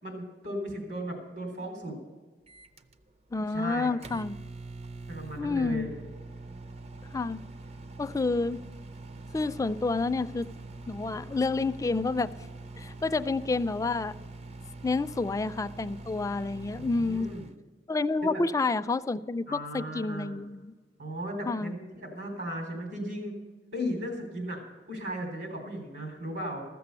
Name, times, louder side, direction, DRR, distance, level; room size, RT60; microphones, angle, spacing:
voice 1, 0.0-2.0 3.5-3.9 5.1-5.9 16.8-17.5 18.2-18.4 19.5-20.4 21.0-23.4 23.7-24.6 24.9-26.6, equal, 75° right, 2 dB, 3.8 m, -36 dB
Microwave oven, 2.5-17.6, right 2 dB, 40° right, 0.5 m, -44 dB
voice 2, 3.3-4.3 5.4-5.9 7.1-7.4 8.0-8.6 9.3-10.5 10.9-12.3 12.8-14.1 14.8-17.3 17.9-20.7 21.5-21.7, left 3 dB, 20° left, 13 dB, 0.3 m, -29 dB
14.5 x 6.9 x 6.8 m, 1.4 s
head